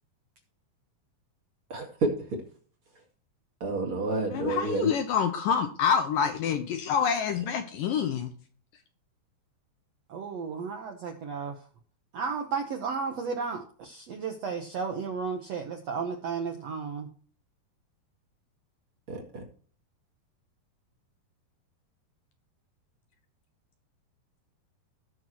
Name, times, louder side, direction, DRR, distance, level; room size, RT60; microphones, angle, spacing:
voice 1, 1.7-2.1 3.6-4.9 19.1-19.4, right 3 dB, 40° right, 1 dB, 2.2 m, -29 dB
voice 2, 4.3-8.3, left 7 dB, 75° left, 7 dB, 2.1 m, -27 dB
voice 3, 10.1-11.6 12.1-17.1, right 5 dB, 90° right, 4 dB, 1.4 m, -33 dB
18.0 x 6.3 x 3.1 m, 0.43 s
omnidirectional pair, 4.7 m